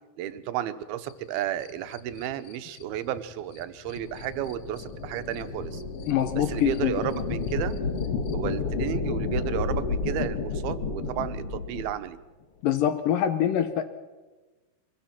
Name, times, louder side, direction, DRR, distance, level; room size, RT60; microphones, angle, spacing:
voice 1, 0.2-5.8 6.4-7.8 8.3-12.2, right 11 dB, 80° right, 11 dB, 2.8 m, -32 dB
sound 1, 1.0-8.5, left 11 dB, 90° left, 1.5 m, -44 dB
sound 2, 3.9-12.0, left 4 dB, 45° left, 2.4 m, -31 dB
voice 2, 6.1-7.0 12.6-13.8, left 10 dB, 70° left, 10 dB, 2.4 m, -24 dB
23.5 x 22.5 x 5.9 m, 1.2 s
omnidirectional pair, 4.4 m